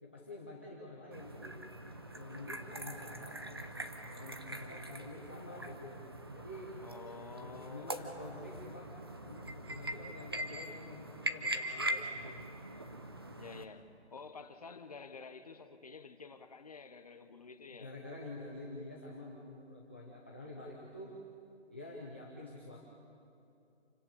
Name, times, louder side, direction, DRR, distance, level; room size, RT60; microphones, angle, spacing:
voice 1, 0.0-1.6 2.1-3.4 4.0-6.1 6.3-6.7 7.4-9.0 9.2-12.4 17.7-21.1 21.7-22.9, left 2 dB, 10° left, 0.7 m, -48 dB
sound 1, 1.1-13.6, right 1 dB, 20° right, 0.7 m, -42 dB
voice 2, 6.8-8.4 13.4-17.9, left 4 dB, 35° left, 1.0 m, -50 dB
28.0 x 17.0 x 7.0 m
hypercardioid pair, 170°, 35 cm